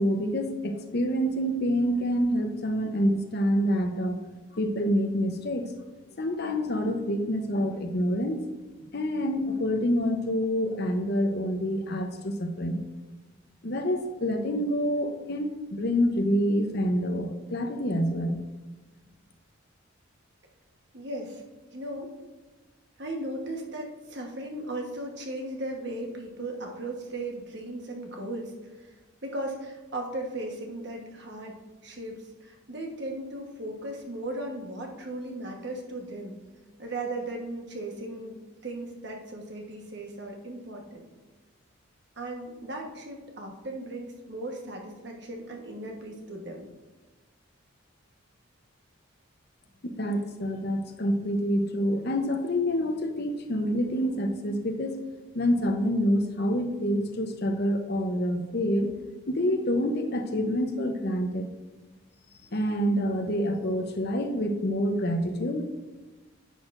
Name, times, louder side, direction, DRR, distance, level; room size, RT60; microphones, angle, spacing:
voice 1, 0.0-4.2 4.5-5.7 6.2-8.5 8.9-12.8 13.6-18.4 49.8-55.0 55.3-58.9 59.3-61.5 62.5-65.7, equal, 50° left, 5 dB, 0.8 m, -27 dB
voice 2, 20.9-21.4 21.7-22.2 23.0-28.9 29.2-31.6 31.8-36.4 36.8-41.1 42.2-46.7, right 1 dB, 55° right, 1 dB, 1.2 m, -37 dB
10.0 x 6.4 x 2.5 m, 1.2 s
head